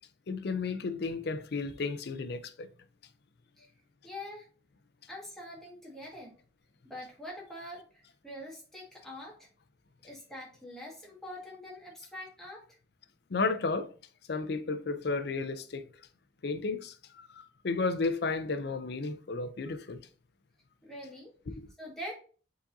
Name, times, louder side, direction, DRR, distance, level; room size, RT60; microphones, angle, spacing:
voice 1, 0.3-2.7 13.3-13.9 14.3-15.9 16.4-20.0 21.5-21.6, left 4 dB, 60° left, 0.5 m, -33 dB
voice 2, 4.0-4.5 5.1-6.3 6.8-9.5 10.0-12.6 20.8-21.3 21.8-22.1, left 1 dB, ahead, 1.5 m, -44 dB
4.8 x 4.1 x 2.5 m
head